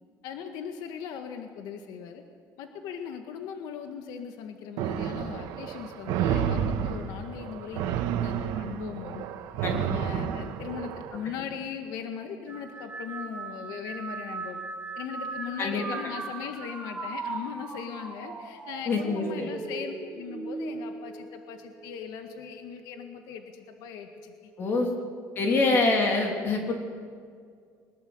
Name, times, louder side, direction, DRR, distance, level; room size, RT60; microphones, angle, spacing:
voice 1, 0.2-2.2 2.6-9.3 9.7-14.6 15.0-24.5 25.0-25.1 25.6-25.8, left 7 dB, 70° left, 5 dB, 1.8 m, -39 dB
sound 1, 4.8-11.2, right 9 dB, 75° right, 1.7 m, -30 dB
sound 2, 12.5-22.1 22.5-23.1 24.1-24.4, right 3 dB, 20° right, 3.8 m, -39 dB
voice 2, 18.9-19.2 24.6-24.9 25.3-26.7, left 3 dB, 35° left, 2 dB, 2.9 m, -25 dB
22.5 x 21.0 x 7.9 m, 2.1 s
cardioid pair, 170°, 7 cm